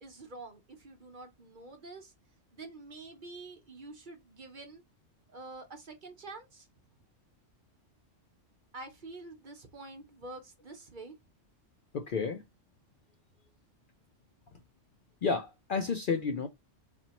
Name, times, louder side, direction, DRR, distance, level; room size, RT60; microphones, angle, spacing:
voice 1, 0.0-2.1 2.5-4.8 5.3-6.7 8.7-11.2, right 2 dB, 45° right, 0.9 m, -47 dB
voice 2, 11.9-12.4 15.2-16.5, left 5 dB, 55° left, 0.6 m, -31 dB
4.3 x 2.9 x 2.9 m
omnidirectional pair, 1.3 m